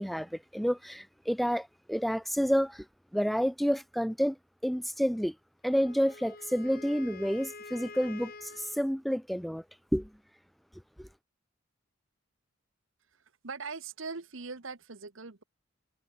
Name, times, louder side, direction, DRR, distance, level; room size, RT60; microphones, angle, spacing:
voice 1, 0.0-2.9 3.1-4.4 4.6-5.3 5.6-9.6 9.9-10.1 11.0-11.1, equal, ahead, 0.5 m, -29 dB
Wind instrument woodwind instrument, 5.7-8.9, left 3 dB, 45° left, 4.8 m, -47 dB
voice 2, 13.1-15.4, right 4 dB, 70° right, 1.3 m, -41 dB
head